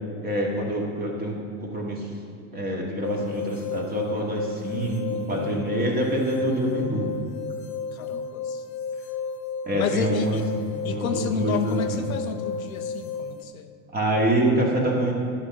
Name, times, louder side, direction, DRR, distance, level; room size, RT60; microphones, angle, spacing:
voice 1, 0.2-2.1 2.5-7.1 9.6-10.4 10.8-12.0 13.9-15.1, right 1 dB, 20° right, -2 dB, 2.3 m, -26 dB
sound 1, 3.0-13.4, left 5 dB, 40° left, 0.9 m, -33 dB
voice 2, 5.3-5.8 7.9-8.6 9.7-10.4 10.8-13.7, left 7 dB, 75° left, 7 dB, 0.8 m, -31 dB
11.0 x 4.1 x 7.5 m, 2.4 s
figure-of-eight pair, 85°, 42 cm